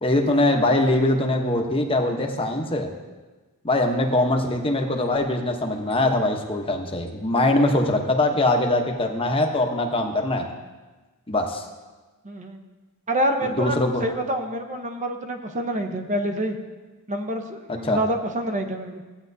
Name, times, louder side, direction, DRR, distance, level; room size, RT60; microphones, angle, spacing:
voice 1, 0.0-2.9 3.6-10.5 11.3-11.6 13.6-14.0 17.8-18.0, left 2 dB, 25° left, 3 dB, 0.9 m, -22 dB
voice 2, 12.2-12.6 13.1-16.6 17.1-19.0, right 1 dB, 35° right, 5 dB, 0.8 m, -27 dB
15.5 x 8.7 x 2.7 m, 1.2 s
head